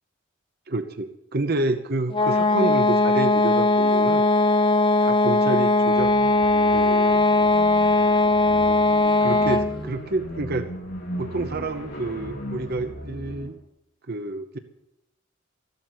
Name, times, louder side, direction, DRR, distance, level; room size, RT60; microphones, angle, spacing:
voice 1, 0.7-4.3 5.0-6.1 6.7-7.2 9.2-10.7 11.2-13.5 14.1-14.6, right 2 dB, 50° right, 8 dB, 0.9 m, -28 dB
sound 1, 2.1-9.8, left 2 dB, 25° left, 1.1 m, -19 dB
sound 2, 5.9-13.6, equal, 55° left, 3.7 m, -37 dB
14.5 x 12.0 x 7.9 m, 0.88 s
head